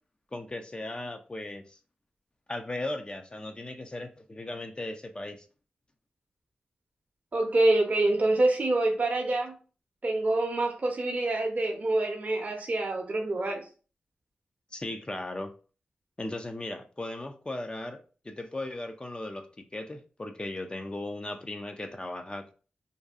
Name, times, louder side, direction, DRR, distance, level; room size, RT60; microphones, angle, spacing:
voice 1, 0.3-1.8 2.5-5.5 14.7-15.5 16.2-22.5, left 2 dB, 30° left, 6 dB, 0.4 m, -37 dB
voice 2, 7.3-9.6 10.0-13.7, right 2 dB, 45° right, 1 dB, 0.6 m, -26 dB
2.6 x 2.3 x 2.3 m, 0.36 s
cardioid pair, 45°, 4 cm